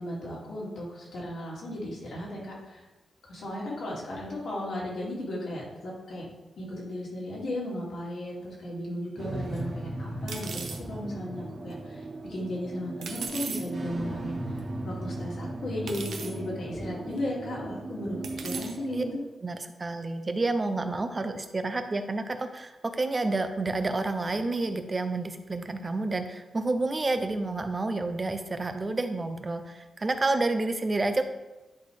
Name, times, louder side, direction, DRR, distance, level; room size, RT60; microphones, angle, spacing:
voice 1, 0.0-2.8 3.3-6.3 6.6-14.4 14.8-19.1, left 1 dB, 75° left, -5 dB, 2.3 m, -35 dB
sound 1, 9.2-19.2, right 2 dB, 50° right, 1.2 m, -37 dB
sound 2, 9.5-9.6 10.3-10.8 13.0-13.6 14.6-14.7 15.9-16.3 17.2-17.3 18.2-18.7, right 5 dB, 85° right, 0.8 m, -37 dB
voice 2, 19.4-31.2, right 2 dB, 25° right, 8 dB, 0.6 m, -29 dB
10.5 x 4.1 x 3.3 m, 1.1 s
wide cardioid pair, 135°, 0 cm